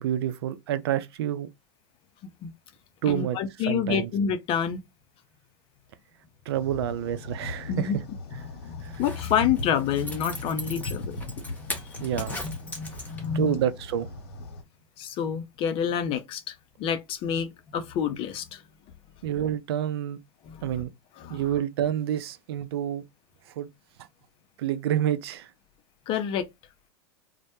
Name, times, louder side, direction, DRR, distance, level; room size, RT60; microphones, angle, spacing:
voice 1, 0.0-1.5 3.0-3.4 3.6-4.1 6.5-7.9 8.8-9.0 12.0-12.4 13.3-14.1 19.2-20.2 20.6-20.9 21.3-23.0 23.6-23.7 24.6-25.5, right 10 dB, 70° right, 0.4 m, -28 dB
voice 2, 3.1-4.8 7.7-8.0 8.3-11.3 11.6-11.7 12.0-13.6 15.0-18.6 20.4-20.6 21.2-21.4 26.1-26.5, left 8 dB, 40° left, 0.5 m, -29 dB
sound 1, 6.5-14.6, left 2 dB, 70° left, 0.8 m, -39 dB
Zipper (clothing), 8.9-13.5 13.8-13.9, left 2 dB, 10° left, 0.8 m, -38 dB
2.1 x 2.1 x 2.9 m
hypercardioid pair, 95°, 14 cm